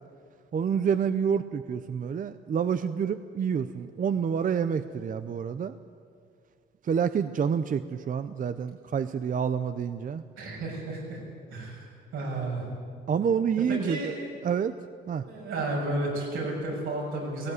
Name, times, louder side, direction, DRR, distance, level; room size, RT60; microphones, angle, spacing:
voice 1, 0.5-5.7 6.8-10.2 13.1-14.1 14.4-14.8 15.1-15.2, right 7 dB, 40° right, 11 dB, 0.7 m, -28 dB
voice 2, 10.4-11.2 11.5-11.9 12.1-12.6 13.7-14.3 15.3-17.5, right 2 dB, 85° right, -2 dB, 7.4 m, -32 dB
17.5 x 17.0 x 9.7 m, 2.2 s
cardioid pair, 90°, 20 cm